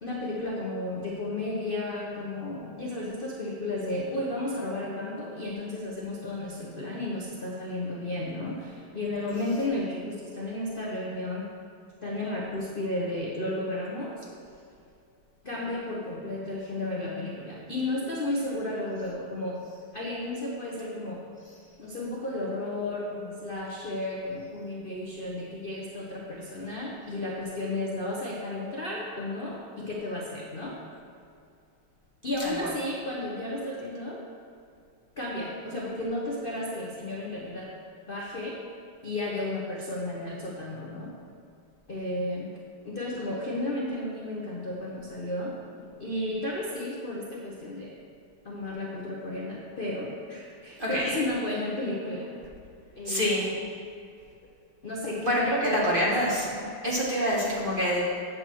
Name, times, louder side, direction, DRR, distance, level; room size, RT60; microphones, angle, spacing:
voice 1, 0.0-11.5 12.0-14.3 15.4-19.6 19.9-21.2 21.8-30.8 32.2-34.2 35.2-37.7 38.1-38.6 39.0-41.1 41.9-42.5 42.8-45.5 46.0-48.0 48.4-52.3 52.9-53.6 54.8-56.7, left 1 dB, 45° left, -4 dB, 0.7 m, -33 dB
voice 2, 32.4-32.7 50.8-51.2 53.0-53.5 55.2-56.4 56.8-58.1, equal, 25° right, -6 dB, 1.5 m, -26 dB
8.6 x 7.6 x 4.5 m, 2.4 s
omnidirectional pair, 2.4 m